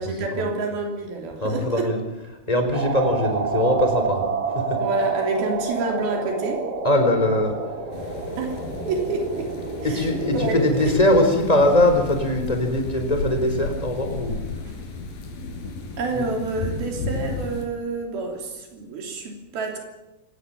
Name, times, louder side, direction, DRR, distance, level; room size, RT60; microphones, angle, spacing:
voice 1, 0.0-1.9 4.8-6.6 8.4-8.6 8.9-9.5 9.8-10.0 10.3-10.8 16.0-19.8, right 3 dB, 85° right, 2 dB, 5.0 m, -28 dB
voice 2, 1.4-2.0 2.5-4.3 4.5-4.8 6.8-7.5 9.8-14.4 16.1-16.2, left 1 dB, 10° left, 5 dB, 4.2 m, -21 dB
sound 1, 2.7-11.3, right 5 dB, 30° right, 3.0 m, -29 dB
sound 2, 7.9-17.7, left 3 dB, 75° left, 5.3 m, -34 dB
26.0 x 19.5 x 7.4 m, 1.0 s
omnidirectional pair, 4.2 m